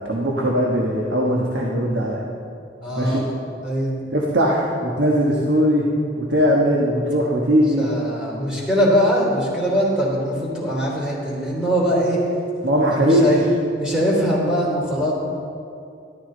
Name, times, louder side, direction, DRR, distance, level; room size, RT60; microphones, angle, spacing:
voice 1, 0.0-2.2 3.0-3.2 4.1-5.9 6.2-7.9 12.6-13.3, equal, 85° right, -2 dB, 1.3 m, -19 dB
voice 2, 2.8-3.2 3.6-3.9 7.8-12.2 12.9-13.5 13.8-15.1, equal, 5° right, -6 dB, 3.3 m, -21 dB
12.5 x 12.5 x 3.9 m, 2.4 s
head